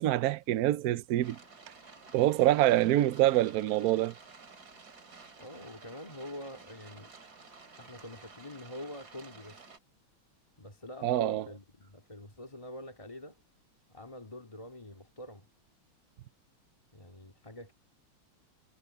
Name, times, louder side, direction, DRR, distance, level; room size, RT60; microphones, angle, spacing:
voice 1, 0.0-1.4 2.1-4.1 11.0-11.4, right 14 dB, 80° right, 0.8 m, -25 dB
sound 1, 1.2-9.8, right 4 dB, 50° right, 3.3 m, -53 dB
voice 2, 2.7-3.1 5.4-7.1 7.8-9.8 10.6-13.4 13.9-15.5 16.9-17.7, left 1 dB, 15° left, 2.1 m, -46 dB
omnidirectional pair, 2.2 m